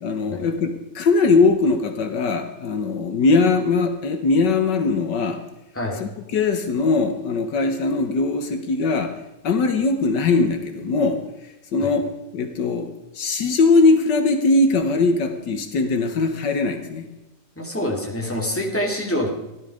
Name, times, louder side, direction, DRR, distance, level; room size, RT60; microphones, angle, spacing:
voice 1, 0.0-5.4 6.0-9.2 9.4-11.2 11.7-12.1 12.3-17.1, left 3 dB, 75° left, 7 dB, 1.8 m, -20 dB
voice 2, 17.6-19.3, left 1 dB, 5° left, -1 dB, 2.9 m, -26 dB
15.5 x 12.0 x 5.0 m, 0.98 s
omnidirectional pair, 1.9 m